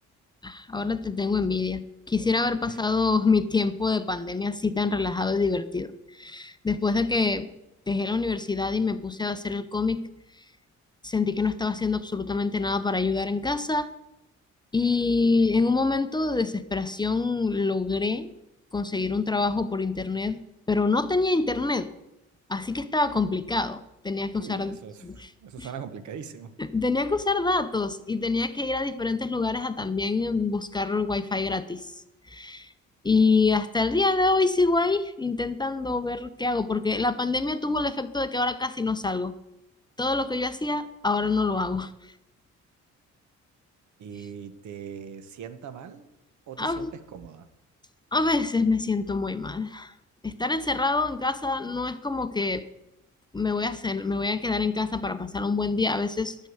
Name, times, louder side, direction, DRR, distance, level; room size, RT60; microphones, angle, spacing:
voice 1, 0.4-7.5 7.9-10.1 11.0-13.9 14.7-18.3 18.7-20.4 20.7-21.9 22.5-23.8 24.0-24.8 25.0-25.3 25.6-25.7 26.6-32.0 32.3-32.7 33.0-39.3 40.0-41.9 46.6-46.9 48.1-49.9 50.2-52.6 53.3-56.5, left 3 dB, 15° left, 11 dB, 0.5 m, -26 dB
voice 2, 24.4-26.6 44.0-46.1 46.5-47.5, right 7 dB, 70° right, 11 dB, 1.0 m, -41 dB
8.1 x 6.6 x 7.8 m, 0.92 s
cardioid pair, 90°, 30 cm